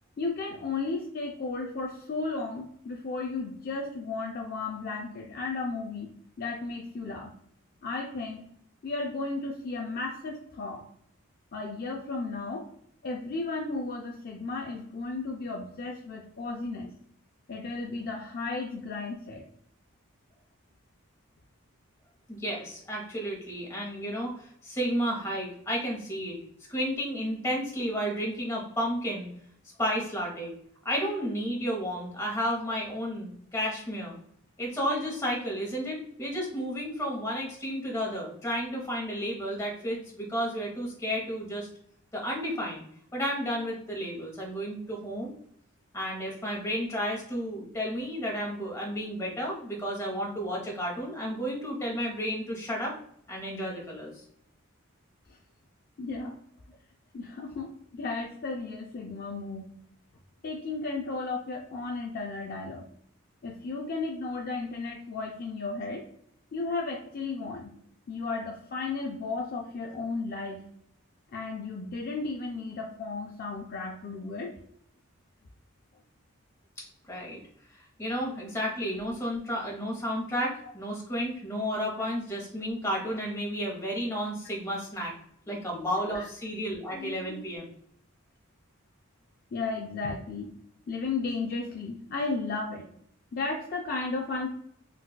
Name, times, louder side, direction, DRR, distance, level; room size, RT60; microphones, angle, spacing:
voice 1, 0.2-6.1 6.4-7.3 7.8-8.5 8.8-10.9 11.5-12.7 13.0-16.9 17.5-19.4 55.3-55.4 56.0-56.4 57.1-59.7 60.4-62.9 63.4-66.0 66.5-67.7 68.1-70.7 71.3-74.6 85.5-85.9 86.1-86.2 86.9-87.4 89.5-90.5 90.9-92.9 93.3-94.5, left 3 dB, 45° left, 1 dB, 0.3 m, -34 dB
voice 2, 22.3-26.4 26.7-29.3 29.8-30.5 30.8-34.2 34.6-41.7 42.1-42.8 43.1-45.3 45.9-53.0 53.3-54.2 77.1-77.4 77.7-85.1 85.5-87.7, equal, 15° left, -2 dB, 0.8 m, -32 dB
4.0 x 2.3 x 2.2 m, 0.66 s
head